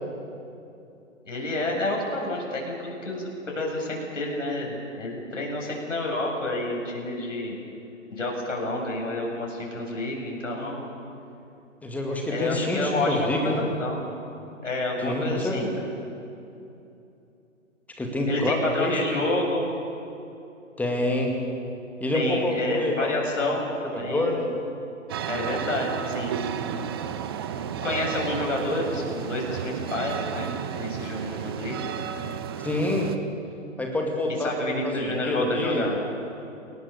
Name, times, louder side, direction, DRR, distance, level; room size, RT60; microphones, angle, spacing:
voice 1, 1.3-7.6 8.1-10.9 12.3-14.0 14.6-15.7 18.3-19.7 22.1-24.4 25.3-26.4 27.8-30.5 30.7-31.9 34.4-36.0, left 2 dB, 65° left, -1 dB, 7.6 m, -29 dB
voice 2, 11.8-13.6 15.0-15.8 18.0-19.0 20.8-21.3 22.0-23.1 23.4-23.5 23.9-24.5 32.6-33.1 33.8-35.9, left 1 dB, 5° left, 1 dB, 2.3 m, -27 dB
sound 1, 25.1-33.2, right 8 dB, 20° right, 0.7 m, -32 dB
29.5 x 18.5 x 6.9 m, 2.8 s
figure-of-eight pair, 135°, 39 cm